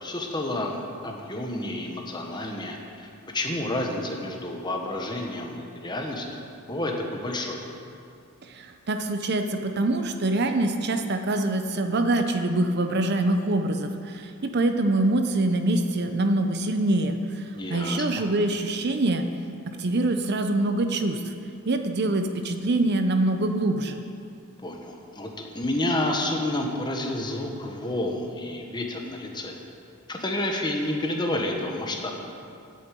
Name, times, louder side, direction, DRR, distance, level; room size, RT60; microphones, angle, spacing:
voice 1, 0.0-7.6 17.5-18.2 24.6-29.6 30.1-32.1, left 1 dB, 20° left, 1 dB, 1.2 m, -30 dB
voice 2, 8.4-19.3 19.7-21.3 21.7-24.0, right 2 dB, 50° right, 6 dB, 0.7 m, -25 dB
10.5 x 8.5 x 7.6 m, 2.5 s
head